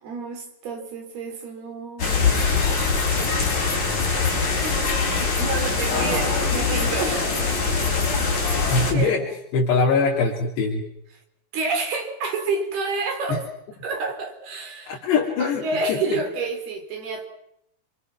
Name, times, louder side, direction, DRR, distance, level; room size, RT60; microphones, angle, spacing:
voice 1, 0.0-2.3 4.6-7.3 8.9-9.2 11.5-13.4 13.8-15.0 15.4-17.3, right 3 dB, 65° right, 5 dB, 6.0 m, -29 dB
sound 1, 2.0-8.9, left 4 dB, 45° left, 6.7 m, -22 dB
voice 2, 8.7-9.2 9.5-10.8 13.3-13.4 14.9-15.6 15.9-16.2, left 4 dB, 75° left, -1 dB, 4.9 m, -22 dB
28.0 x 25.5 x 6.1 m, 0.77 s
omnidirectional pair, 4.9 m